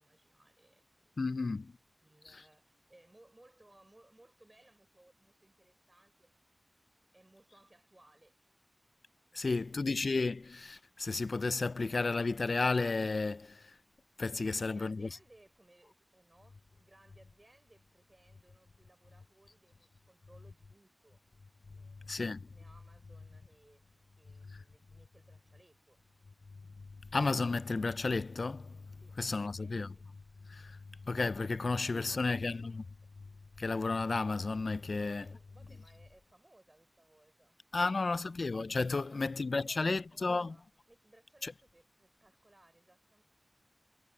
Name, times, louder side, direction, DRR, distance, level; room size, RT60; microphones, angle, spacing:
voice 1, 0.0-1.3 2.0-6.3 7.1-8.4 9.3-9.8 14.4-21.2 21.7-23.8 24.2-26.0 29.0-30.1 31.5-32.9 34.9-38.4 39.0-43.2, right 1 dB, 35° right, 5.6 m, -64 dB
voice 2, 1.2-1.7 2.3-2.4 9.3-13.7 14.2-15.1 22.1-22.4 27.1-28.8 29.2-29.9 30.5-30.8 31.1-32.8 33.6-35.3 37.7-40.5 41.4-41.5, left 3 dB, 70° left, 0.4 m, -32 dB
wide cardioid pair, 50°, 0 cm